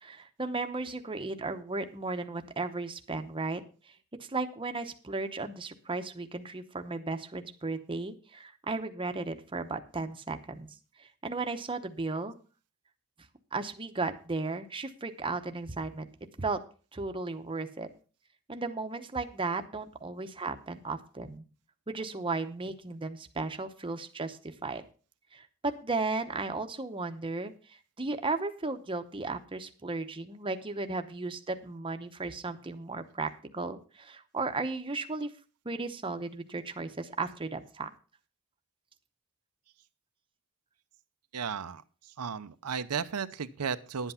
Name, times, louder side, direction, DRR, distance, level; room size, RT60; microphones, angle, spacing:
voice 1, 0.0-3.6 4.2-10.7 11.0-12.3 13.5-16.1 16.4-16.6 16.9-17.9 18.5-21.5 21.9-24.8 25.3-35.3 35.6-37.9, right 3 dB, 25° right, 7 dB, 0.9 m, -35 dB
voice 2, 41.3-44.1, right 6 dB, 85° right, 10 dB, 0.7 m, -35 dB
11.0 x 8.0 x 5.7 m, 0.37 s
head